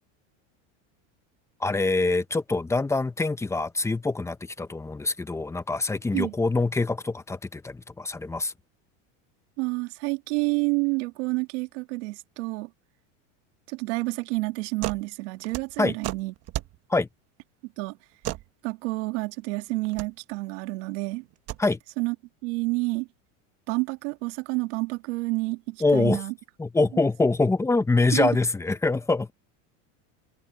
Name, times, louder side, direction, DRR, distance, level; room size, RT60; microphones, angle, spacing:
voice 1, 1.6-8.5 15.8-16.0 16.9-17.1 21.6-21.8 25.8-26.2 26.6-29.3, left 3 dB, 5° left, 1.0 m, -24 dB
voice 2, 9.6-12.7 13.7-16.3 17.8-18.0 18.6-21.3 22.0-22.1 22.4-23.1 23.7-26.3 28.1-28.3, right 25 dB, 65° right, 2.3 m, -29 dB
sound 1, 14.8-15.1 15.3-16.8 18.2-18.5 19.8-20.1 21.3-21.6, right 16 dB, 40° right, 1.1 m, -33 dB
supercardioid pair, 140°, 37 cm